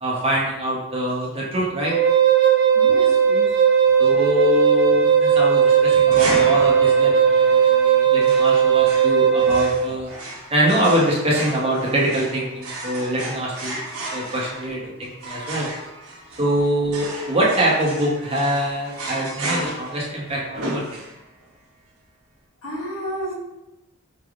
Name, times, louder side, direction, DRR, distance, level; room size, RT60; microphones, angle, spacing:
voice 1, 0.0-1.9 4.0-10.1 10.5-13.8 14.1-15.7 16.4-20.8, equal, 25° right, -4 dB, 0.9 m, -24 dB
Wind instrument woodwind instrument, 1.9-9.8, right 7 dB, 50° right, 0.4 m, -17 dB
voice 2, 2.7-3.5 14.9-15.0 15.7-15.8 22.6-23.3, equal, 75° left, -5 dB, 1.4 m, -32 dB
sound 1, 6.1-21.5, right 1 dB, 80° right, 0.9 m, -33 dB
4.7 x 3.3 x 2.4 m, 0.96 s
head